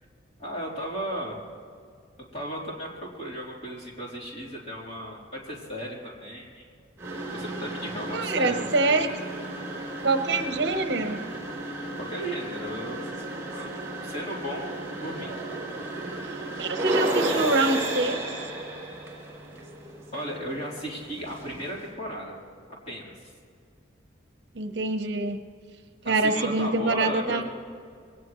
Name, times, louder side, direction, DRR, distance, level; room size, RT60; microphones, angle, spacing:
voice 1, 0.4-1.4 2.3-6.7 7.3-9.0 12.0-13.2 13.5-14.7 15.0-15.3 20.1-22.4 22.9-23.1 26.0-27.4, equal, 30° left, -4 dB, 3.7 m, -35 dB
sound 1, 7.0-21.9, right 2 dB, 15° right, 4.0 m, -34 dB
voice 2, 8.1-9.1 10.0-11.2 16.6-18.2 24.5-25.4 26.0-27.4, right 2 dB, 60° right, 6 dB, 1.0 m, -25 dB
23.0 x 18.0 x 3.2 m, 2.2 s
head